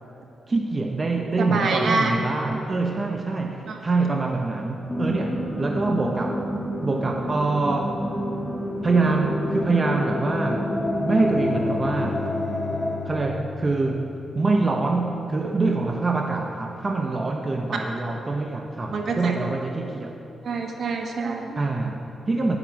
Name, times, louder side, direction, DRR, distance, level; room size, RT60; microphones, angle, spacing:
voice 1, 0.5-6.4 6.8-8.0 8.8-10.7 11.0-12.2 13.0-14.1 14.3-20.2 21.6-22.6, right 3 dB, 30° right, 2 dB, 0.9 m, -25 dB
voice 2, 1.4-2.1 3.7-3.8 18.9-19.3 20.4-21.6, right 3 dB, 65° right, 2 dB, 1.6 m, -26 dB
sound 1, 4.9-13.0, left 1 dB, 15° left, 1.5 m, -28 dB
Bowed string instrument, 10.7-14.7, left 9 dB, 50° left, 0.7 m, -37 dB
8.9 x 8.2 x 9.3 m, 2.7 s
cardioid pair, 100°, 0 cm